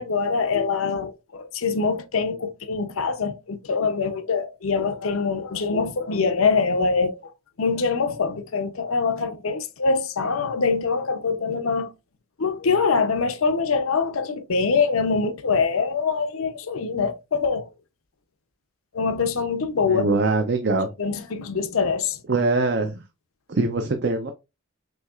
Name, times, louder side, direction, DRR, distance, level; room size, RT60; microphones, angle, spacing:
voice 1, 0.0-7.2 7.6-11.9 12.4-17.7 18.9-20.1 21.0-22.2, left 4 dB, 80° left, 0.6 m, -24 dB
voice 2, 19.9-20.9 22.3-23.0 23.5-24.3, right 3 dB, 50° right, 0.5 m, -22 dB
6.3 x 2.8 x 2.4 m
head